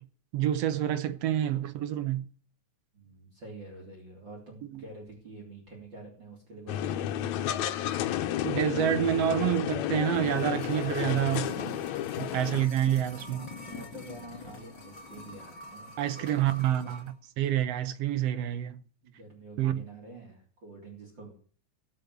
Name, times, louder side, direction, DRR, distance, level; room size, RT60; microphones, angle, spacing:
voice 1, 0.3-2.2 4.7-4.8 8.4-11.8 12.2-13.5 16.0-18.8 19.6-19.8, right 11 dB, 70° right, 1.7 m, -28 dB
voice 2, 2.9-7.5 12.9-17.0 18.6-21.4, right 2 dB, 40° right, 4.1 m, -47 dB
sound 1, 6.7-12.7, left 12 dB, 75° left, 2.0 m, -31 dB
sound 2, 9.7-17.1 17.4-17.5, left 4 dB, 45° left, 3.6 m, -46 dB
20.0 x 6.6 x 6.7 m
omnidirectional pair, 3.4 m